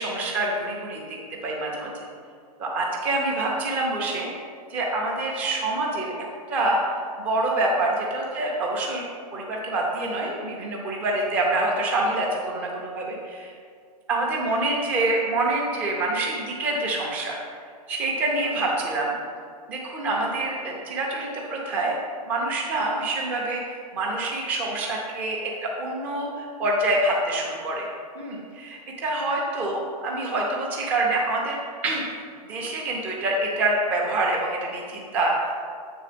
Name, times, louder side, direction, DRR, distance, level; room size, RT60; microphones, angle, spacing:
voice 1, 0.0-2.1 2.6-4.3 4.7-6.1 6.5-9.1 9.3-13.6 14.1-17.4 17.9-19.1 19.7-22.0 22.3-23.6 23.9-27.9 28.2-31.6 31.8-32.0 32.5-35.6, right 2 dB, 10° right, -2 dB, 0.3 m, -26 dB
7.6 x 3.3 x 4.9 m, 2.1 s
hypercardioid pair, 170°, 21 cm